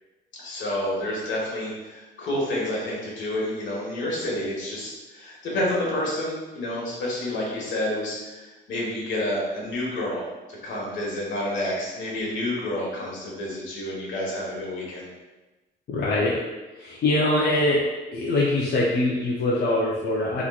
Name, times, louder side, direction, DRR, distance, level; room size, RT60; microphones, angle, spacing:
voice 1, 0.4-15.1, left 1 dB, 75° left, -4 dB, 1.3 m, -29 dB
voice 2, 15.9-16.4 16.8-17.8 18.1-20.4, left 2 dB, 55° left, -5 dB, 0.6 m, -23 dB
3.6 x 3.0 x 2.4 m, 1.1 s
cardioid pair, 90°, 20 cm